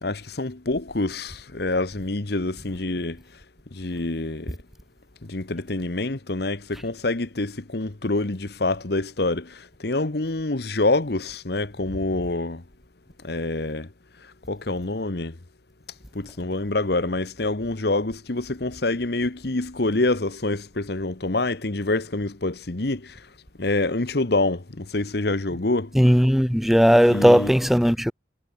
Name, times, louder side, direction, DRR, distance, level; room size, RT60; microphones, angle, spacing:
voice 1, 0.0-3.2 3.7-4.6 5.2-12.6 13.2-13.9 14.2-15.4 16.1-23.3 23.6-25.9 27.1-27.5, left 2 dB, 60° left, 1.2 m, -26 dB
voice 2, 25.9-28.1, equal, ahead, 1.6 m, -17 dB
head